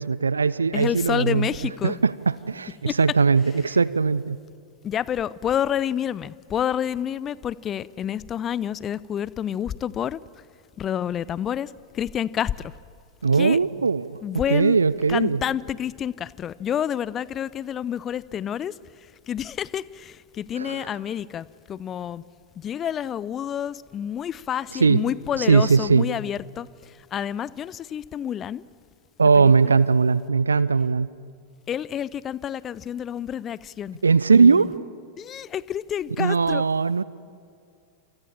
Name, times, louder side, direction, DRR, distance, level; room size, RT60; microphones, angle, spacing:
voice 1, 0.0-1.5 1.8-4.4 13.2-14.2 14.5-15.4 20.6-20.8 24.8-25.0 25.5-26.0 29.2-31.1 34.0-34.7 36.2-37.0, right 5 dB, 75° right, 0.7 m, -19 dB
voice 2, 0.7-2.0 2.9-3.2 3.7-3.8 4.8-10.2 10.8-12.7 13.3-13.6 14.2-14.8 15.1-22.2 22.6-28.6 29.3-29.8 31.7-34.0 34.3-34.7 35.2-36.7, left 9 dB, 25° left, 0.6 m, -29 dB
28.5 x 27.0 x 7.3 m
figure-of-eight pair, 90°, 0 cm